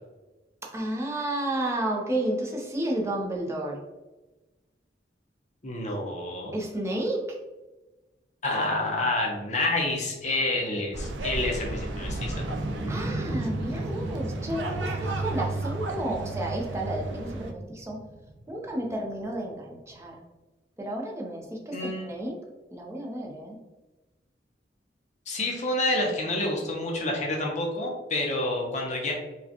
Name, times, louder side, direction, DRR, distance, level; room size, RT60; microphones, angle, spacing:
voice 1, 0.6-3.8 6.5-7.3 12.9-18.0 18.5-20.2 20.8-22.4 22.7-23.6, right 1 dB, 15° right, -1 dB, 0.6 m, -31 dB
voice 2, 5.6-6.6 8.4-12.4 21.7-22.1 25.3-29.1, left 2 dB, 40° left, -1 dB, 0.7 m, -28 dB
sound 1, 10.2-20.1, right 1 dB, 5° left, 1.2 m, -37 dB
sound 2, 10.9-17.5, right 2 dB, 80° right, 0.5 m, -33 dB
4.8 x 2.2 x 2.8 m, 1.1 s
head